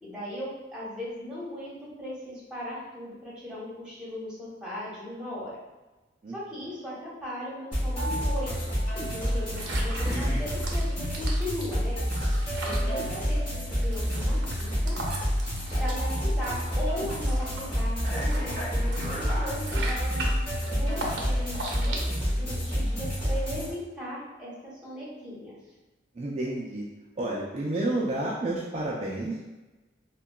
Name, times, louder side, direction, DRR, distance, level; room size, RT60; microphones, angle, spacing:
voice 1, 0.0-5.5 6.3-12.0 12.6-15.0 15.8-20.2 20.7-22.0 22.3-25.5, left 1 dB, 5° right, -8 dB, 0.8 m, -38 dB
sound 1, 7.7-23.7, equal, 30° left, 1.3 m, -28 dB
sound 2, 9.2-22.1, right 2 dB, 75° right, 0.6 m, -39 dB
voice 2, 26.1-26.9 27.2-29.5, right 1 dB, 35° right, -4 dB, 0.3 m, -30 dB
3.6 x 2.2 x 2.2 m, 1.1 s
head